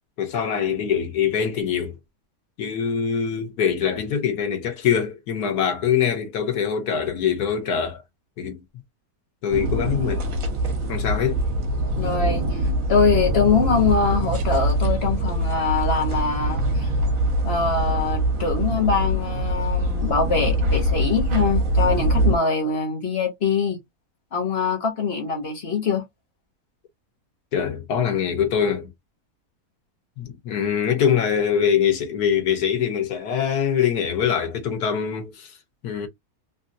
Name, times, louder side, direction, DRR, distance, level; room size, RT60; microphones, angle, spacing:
voice 1, 0.2-2.0 2.6-8.0 8.4-8.6 9.4-10.3 10.9-11.4 27.5-28.9 30.2-35.5 35.8-36.1, left 8 dB, 80° left, 1.5 m, -23 dB
sound 1, 9.5-22.4, right 1 dB, 65° right, 1.3 m, -23 dB
voice 2, 12.0-12.4 12.9-16.9 17.4-23.8 24.3-26.0, left 5 dB, 45° left, 1.2 m, -23 dB
3.4 x 2.6 x 2.6 m
omnidirectional pair, 1.6 m